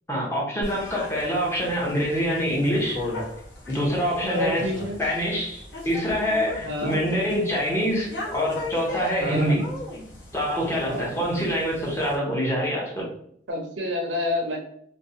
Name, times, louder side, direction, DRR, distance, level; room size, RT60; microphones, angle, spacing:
voice 1, 0.1-3.0 3.7-4.7 5.0-9.6 10.3-13.0, equal, 15° left, -4 dB, 0.6 m, -25 dB
sound 1, 0.6-12.2, left 1 dB, 65° left, 0.8 m, -37 dB
voice 2, 4.2-5.0 6.6-7.0 9.2-9.7 10.8-11.2 13.5-14.6, left 1 dB, 85° right, 2 dB, 0.6 m, -28 dB
2.5 x 2.0 x 2.6 m, 0.67 s
head